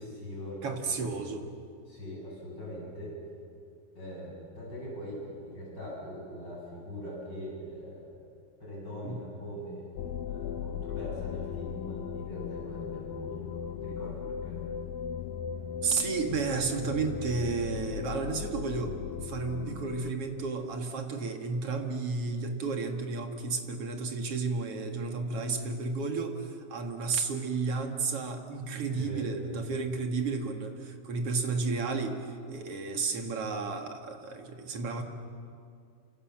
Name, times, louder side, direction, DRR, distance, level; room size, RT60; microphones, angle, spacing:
voice 1, 0.0-1.1 1.9-3.2 3.9-8.1 8.6-9.9 10.2-14.6 28.9-29.3, equal, 30° left, -4 dB, 8.2 m, -41 dB
voice 2, 0.6-1.4 9.0-9.2 15.8-35.0, right 4 dB, 45° right, 5 dB, 2.5 m, -32 dB
sound 1, 10.0-20.1, left 8 dB, 80° left, 2.6 m, -37 dB
28.5 x 26.5 x 7.5 m, 2.3 s
omnidirectional pair, 4.0 m